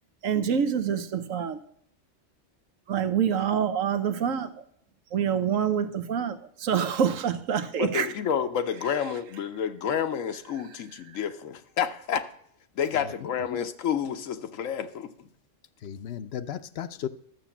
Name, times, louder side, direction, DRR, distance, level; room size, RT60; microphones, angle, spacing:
voice 1, 0.2-1.6 2.9-4.5 5.1-8.1, right 8 dB, 85° right, 1.3 m, -26 dB
voice 2, 7.8-12.2 12.8-15.3, left 8 dB, 90° left, 1.2 m, -29 dB
voice 3, 12.9-13.3 15.8-17.1, left 9 dB, 60° left, 0.8 m, -35 dB
12.5 x 7.0 x 7.1 m
omnidirectional pair, 1.3 m